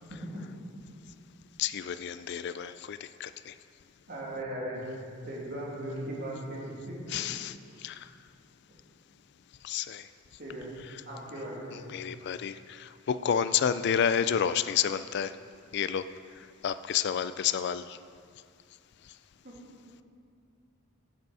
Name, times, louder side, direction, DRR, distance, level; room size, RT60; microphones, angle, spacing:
voice 1, 0.1-0.4 4.1-4.8 5.2-7.0 10.4-10.7 11.0-11.9 19.4-19.5, right 1 dB, 50° right, -5 dB, 2.7 m, -38 dB
voice 2, 1.6-3.5 7.1-7.5 7.8-8.1 9.6-10.1 11.9-15.3 15.7-16.1 16.6-18.0, left 8 dB, 55° left, 13 dB, 0.3 m, -30 dB
15.0 x 6.8 x 4.8 m, 2.3 s
head